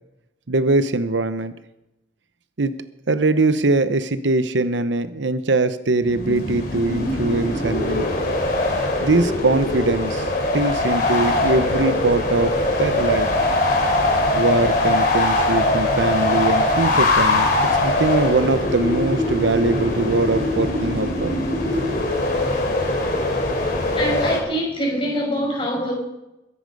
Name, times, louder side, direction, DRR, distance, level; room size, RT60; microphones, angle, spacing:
voice 1, 0.5-1.5 2.6-2.8 3.1-8.2 9.0-10.3 10.5-12.5 12.8-13.3 14.3-17.5 17.8-21.4, right 2 dB, 85° right, 13 dB, 0.9 m, -21 dB
sound 1, 6.0-24.4, left 2 dB, 50° left, 3.9 m, -21 dB
voice 2, 24.0-25.9, equal, 30° left, -1 dB, 6.0 m, -24 dB
22.5 x 9.9 x 5.4 m, 0.93 s
head